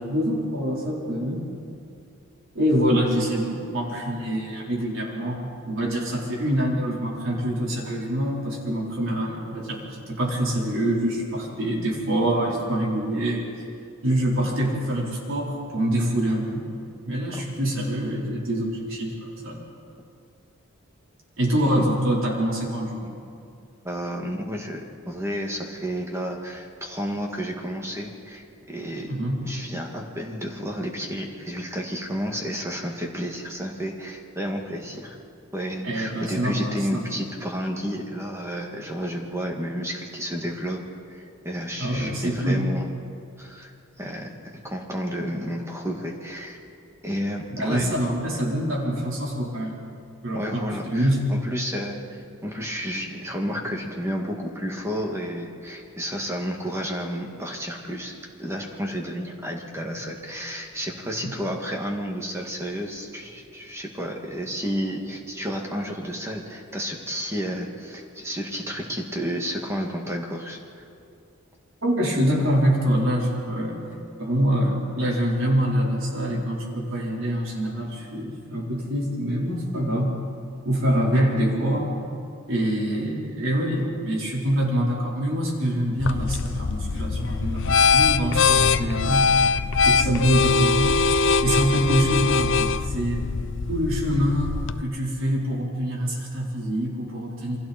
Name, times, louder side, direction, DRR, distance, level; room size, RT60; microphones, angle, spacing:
voice 1, 0.0-1.4 2.5-13.4 14.0-16.7 17.1-19.6 21.4-23.1 29.1-29.4 35.8-37.1 41.8-42.7 47.6-49.8 50.2-51.5 61.2-61.4 71.8-73.8 74.2-80.2 80.6-81.9 82.5-89.4 89.8-91.0 91.4-93.2 93.7-97.6, equal, 65° right, -3 dB, 4.3 m, -25 dB
voice 2, 23.8-29.1 29.4-35.2 35.5-40.8 41.1-42.9 43.4-44.3 44.6-46.6 47.0-48.0 50.3-58.1 58.4-70.6, equal, 15° right, 1 dB, 2.1 m, -31 dB
sound 1, 86.0-94.8, left 5 dB, 60° left, 0.6 m, -22 dB
28.5 x 22.5 x 4.4 m, 2.5 s
head